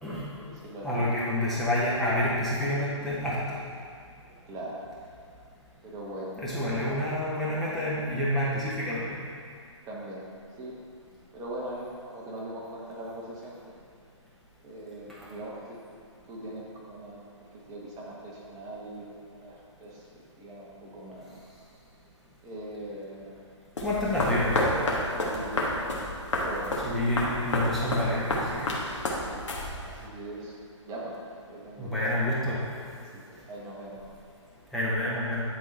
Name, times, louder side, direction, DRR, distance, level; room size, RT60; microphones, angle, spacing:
voice 1, 0.1-1.1 4.3-4.9 5.8-6.4 6.9-7.0 9.8-10.3 10.6-10.8 11.3-13.8 14.6-15.8 16.3-20.1 20.4-21.5 22.4-23.4 25.0-25.9 26.3-26.8 29.2-29.5 29.8-30.5 30.8-31.2 31.5-31.9 33.1-33.2 33.5-34.0, right 1 dB, 20° right, -4 dB, 1.2 m, -41 dB
voice 2, 0.8-3.6 6.4-9.2 23.8-24.6 26.8-28.7 31.8-32.6 34.7-35.4, left 1 dB, ahead, -10 dB, 1.2 m, -28 dB
sound 1, 23.8-30.1, left 1 dB, 70° left, 1.5 m, -30 dB
10.5 x 3.9 x 4.2 m, 2.3 s
figure-of-eight pair, 135°, 16 cm